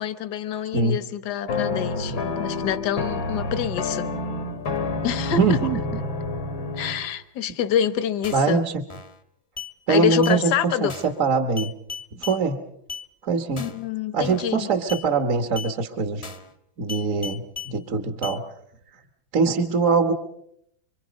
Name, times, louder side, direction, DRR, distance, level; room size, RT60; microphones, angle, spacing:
voice 1, 0.0-4.1 5.0-5.7 6.7-8.6 9.9-10.9 13.6-14.6, left 9 dB, 60° left, 1.5 m, -26 dB
sound 1, 1.5-7.0, left 3 dB, 85° left, 2.8 m, -28 dB
voice 2, 5.4-5.8 8.3-8.8 9.9-11.7 12.2-12.6 13.2-13.6 14.1-16.2 16.8-18.4 19.3-20.1, right 4 dB, 45° right, 1.5 m, -22 dB
sound 2, 8.2-8.5 8.9-9.2 9.6-9.7 10.2-10.4 10.9-11.2 11.6-12.4 12.9-13.1 13.6-13.9 14.2-14.5 14.9-15.1 15.6-15.7 16.2-16.5 16.9-17.7 18.2-18.4, left 5 dB, 20° left, 0.9 m, -36 dB
27.0 x 24.5 x 5.2 m
omnidirectional pair, 2.0 m